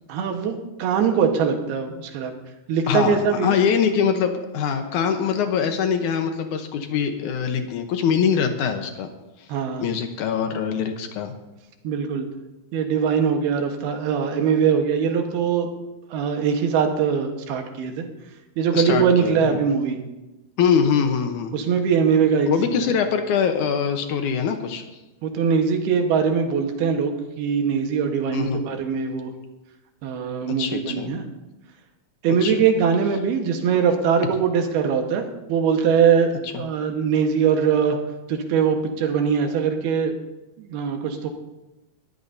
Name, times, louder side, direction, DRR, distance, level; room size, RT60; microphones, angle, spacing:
voice 1, 0.1-2.3 2.7-3.6 9.5-9.9 11.8-12.3 12.7-15.7 16.1-18.1 18.6-20.0 21.5-22.8 25.2-29.3 30.0-31.2 32.2-38.0 38.3-40.2 40.6-41.3, right 6 dB, 75° right, 4 dB, 3.3 m, -22 dB
voice 2, 2.9-9.1 9.8-11.3 18.7-19.7 20.6-21.5 22.5-24.8 28.3-28.6 30.6-31.1 32.4-32.6, left 7 dB, 70° left, 6 dB, 1.9 m, -23 dB
20.5 x 15.0 x 2.7 m, 1.0 s
omnidirectional pair, 4.5 m